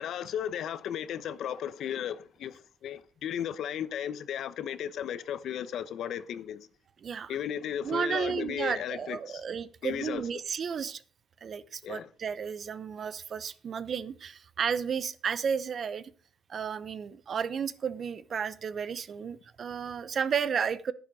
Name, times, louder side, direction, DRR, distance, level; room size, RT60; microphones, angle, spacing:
voice 1, 0.0-6.7 7.3-9.4 9.8-10.3 11.8-12.1, left 9 dB, 75° left, 0.9 m, -35 dB
voice 2, 7.8-11.0 11.4-16.1 16.5-20.9, right 7 dB, 50° right, 0.9 m, -33 dB
10.5 x 10.5 x 4.8 m
cardioid pair, 90°, 0 cm